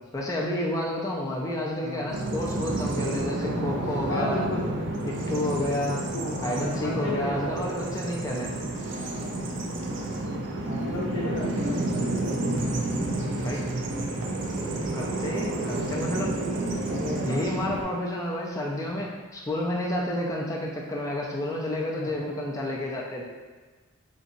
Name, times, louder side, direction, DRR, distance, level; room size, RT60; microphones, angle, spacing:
voice 1, 0.1-4.4 5.1-6.0 6.4-8.5 13.4-13.6 14.9-16.4 17.2-23.2, left 1 dB, 15° left, -3 dB, 0.3 m, -30 dB
voice 2, 1.8-2.2 4.1-4.7 5.6-7.8 8.9-9.4 10.7-13.8 16.9-17.6 18.9-19.0 21.9-22.3, left 1 dB, 85° left, -7 dB, 0.6 m, -35 dB
Bird vocalization bird call bird song, 2.1-17.8, right 2 dB, 55° right, 0.4 m, -30 dB
3.9 x 2.6 x 2.5 m, 1.3 s
head